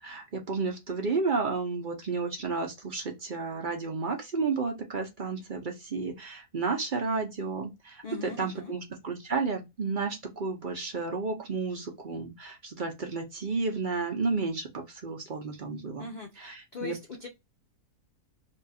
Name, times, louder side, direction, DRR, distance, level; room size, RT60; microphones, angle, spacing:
voice 1, 0.0-16.1 16.4-16.9, right 4 dB, 50° right, 0.6 m, -32 dB
voice 2, 8.0-8.7 16.0-17.3, left 4 dB, 80° left, 0.4 m, -40 dB
2.7 x 2.3 x 4.1 m
omnidirectional pair, 1.7 m